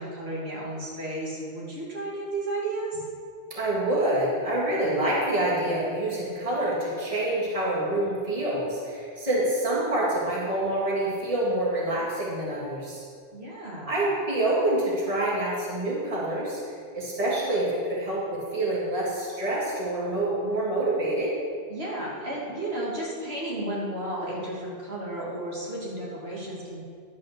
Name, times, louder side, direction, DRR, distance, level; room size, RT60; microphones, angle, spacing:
voice 1, 0.0-3.0 13.3-13.9 21.7-26.8, right 1 dB, 75° right, -6 dB, 2.7 m, -33 dB
voice 2, 3.5-13.0 13.9-16.6 16.9-21.3, right 1 dB, 30° right, -6 dB, 2.2 m, -27 dB
11.0 x 5.6 x 6.7 m, 2.2 s
omnidirectional pair, 1.1 m